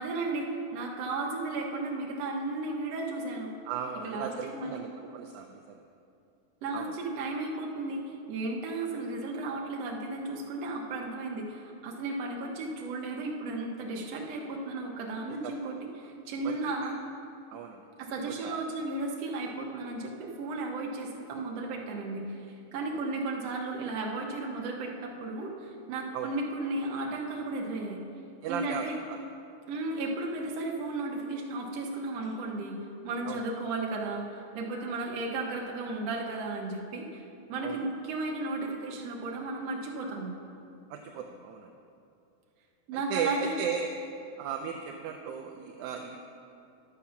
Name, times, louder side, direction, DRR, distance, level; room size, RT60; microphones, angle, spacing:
voice 1, 0.0-3.5 4.0-4.8 6.6-17.0 18.0-28.0 28.5-29.0 29.7-32.8 33.0-37.2 37.5-40.3 42.9-43.5, right 2 dB, 60° right, -1 dB, 1.9 m, -34 dB
voice 2, 3.7-5.8 6.7-6.9 15.4-15.6 16.4-16.6 17.5-17.8 18.3-18.6 26.1-26.3 28.4-29.2 33.3-33.4 37.6-37.8 40.9-41.7 42.9-43.9 44.4-46.3, right 7 dB, 80° right, 2 dB, 1.8 m, -36 dB
11.5 x 7.2 x 5.7 m, 2.6 s
omnidirectional pair, 3.9 m